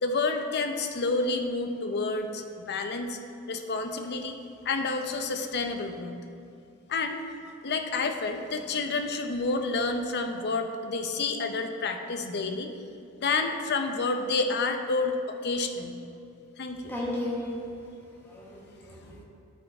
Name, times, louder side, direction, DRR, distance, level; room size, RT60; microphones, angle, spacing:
voice 1, 0.0-3.2 3.5-4.4 4.6-6.2 6.9-7.2 7.6-12.7 13.2-16.0 16.6-17.0, left 3 dB, 50° left, 6 dB, 0.6 m, -29 dB
voice 2, 16.8-17.6 18.2-19.2, left 1 dB, 10° left, -5 dB, 1.1 m, -34 dB
12.5 x 4.5 x 4.3 m, 2.6 s
head